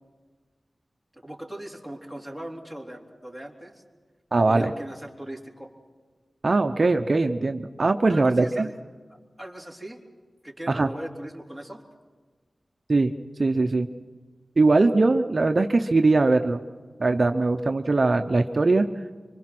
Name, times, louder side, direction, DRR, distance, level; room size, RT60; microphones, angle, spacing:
voice 1, 1.1-3.8 4.5-5.7 8.1-8.8 9.4-10.0 10.4-11.8, right 1 dB, 10° left, 0 dB, 3.6 m, -39 dB
voice 2, 4.3-4.7 6.4-8.7 10.7-10.9 12.9-13.1 13.4-13.9 14.6-16.6 17.0-18.9, right 3 dB, 50° right, 6 dB, 0.8 m, -21 dB
26.0 x 24.5 x 6.1 m, 1.4 s
wide cardioid pair, 85°, 0 cm